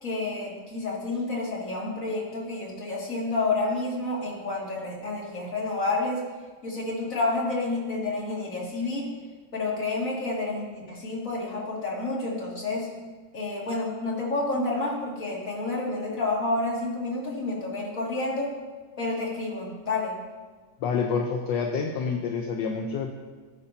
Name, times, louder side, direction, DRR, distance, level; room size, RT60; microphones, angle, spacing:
voice 1, 0.0-6.2 6.6-9.1 9.5-12.9 13.3-18.5 19.0-20.2, left 2 dB, 45° left, -4 dB, 2.7 m, -29 dB
voice 2, 20.8-23.1, left 5 dB, 70° left, 3 dB, 1.5 m, -28 dB
17.5 x 9.6 x 2.8 m, 1.4 s
omnidirectional pair, 2.1 m